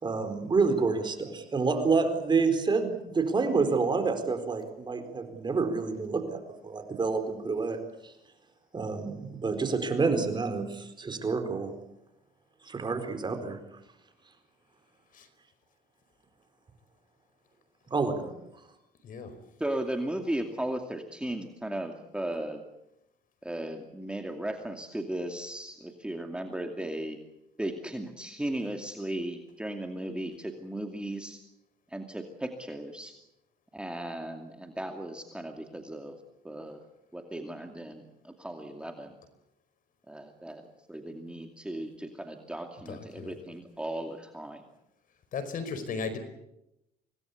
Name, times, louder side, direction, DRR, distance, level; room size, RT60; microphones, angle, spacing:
voice 1, 0.0-8.1 8.7-11.7 12.6-13.6 17.9-18.3, right 4 dB, 25° right, 8 dB, 4.4 m, -28 dB
voice 2, 19.6-22.6 23.4-27.2 27.6-31.4 31.9-33.1 33.7-36.2 36.4-36.8 37.1-39.2 40.1-40.6 40.9-44.6, right 1 dB, 5° right, 4 dB, 2.4 m, -36 dB
voice 3, 42.8-43.4 45.3-46.2, left 5 dB, 55° left, 10 dB, 4.8 m, -36 dB
26.0 x 19.0 x 8.4 m, 0.86 s
cardioid pair, 110°, 17 cm